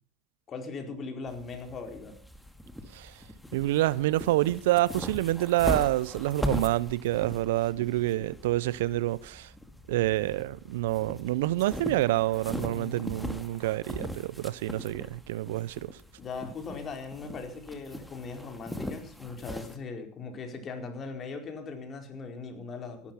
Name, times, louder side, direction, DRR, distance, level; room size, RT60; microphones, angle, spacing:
voice 1, 0.5-2.1 12.7-13.1 16.2-23.1, left 4 dB, 35° left, 4.6 m, -39 dB
sound 1, 1.3-19.8, left 1 dB, ahead, 2.3 m, -40 dB
voice 2, 3.5-9.5 9.9-16.0, right 16 dB, 75° right, 0.6 m, -27 dB
16.0 x 12.5 x 5.7 m
hypercardioid pair, 85°, 0 cm